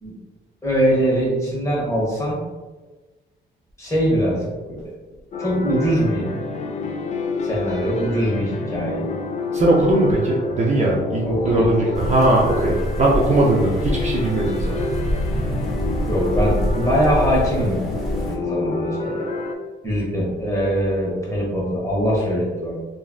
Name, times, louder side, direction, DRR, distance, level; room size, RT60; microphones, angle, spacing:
voice 1, 0.6-2.4 3.8-4.9 5.4-6.3 7.4-9.0 11.3-11.7 16.1-17.8 18.1-19.3 19.8-22.7, equal, 15° left, -4 dB, 1.2 m, -22 dB
sound 1, 5.3-19.6, left 3 dB, 35° left, 0.4 m, -28 dB
voice 2, 9.5-15.0, right 2 dB, 35° right, -3 dB, 0.5 m, -19 dB
sound 2, 11.9-18.4, right 1 dB, ahead, 1.0 m, -26 dB
3.1 x 2.5 x 2.4 m, 1.2 s
cardioid pair, 90°, 20 cm